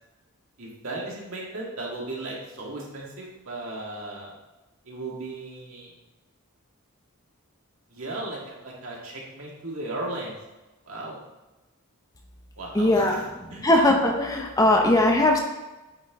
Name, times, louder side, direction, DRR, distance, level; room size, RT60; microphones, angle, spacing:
voice 1, 0.6-4.3 4.8-5.9 7.9-10.4 10.8-11.2 12.6-13.7, right 2 dB, 70° right, -4 dB, 2.0 m, -36 dB
voice 2, 12.7-13.1 13.6-15.4, left 1 dB, 15° left, 1 dB, 0.7 m, -19 dB
8.8 x 4.4 x 3.6 m, 1.1 s
head